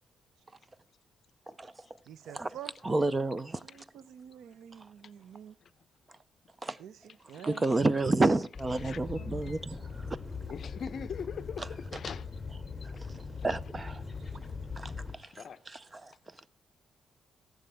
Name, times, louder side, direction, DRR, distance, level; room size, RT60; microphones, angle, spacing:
voice 1, 1.5-1.9 2.3-2.5 2.8-3.6 4.7-4.9 6.1-6.2 6.6-6.8 7.4-10.2 11.6-11.7 12.8-14.0 14.7-15.3 15.7-16.5, right 2 dB, 20° right, 0.5 m, -31 dB
voice 2, 2.0-3.1 3.6-5.6 6.8-7.9 9.0-9.4, right 9 dB, 80° right, 0.6 m, -48 dB
sound 1, 8.5-15.2, left 4 dB, 20° left, 2.6 m, -41 dB
voice 3, 8.8-9.6 10.5-12.3 12.8-13.1 14.9-15.6, left 7 dB, 50° left, 0.6 m, -43 dB
15.0 x 11.5 x 3.4 m
cardioid pair, 130°, 0 cm